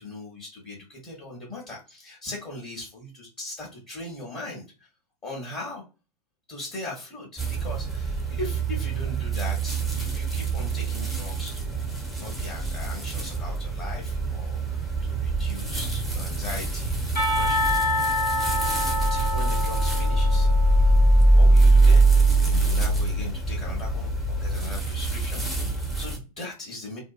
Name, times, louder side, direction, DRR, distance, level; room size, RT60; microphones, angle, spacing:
voice 1, 0.0-4.9 5.2-5.8 6.5-18.0 18.9-20.5 21.3-22.0 22.4-27.0, left 2 dB, 25° left, -3 dB, 0.8 m, -39 dB
sound 1, 7.4-26.2, right 2 dB, ahead, 0.5 m, -23 dB
Percussion, 17.2-22.0, left 2 dB, 90° left, 1.0 m, -28 dB
2.7 x 2.2 x 2.3 m, 0.31 s
figure-of-eight pair, 95°, 19 cm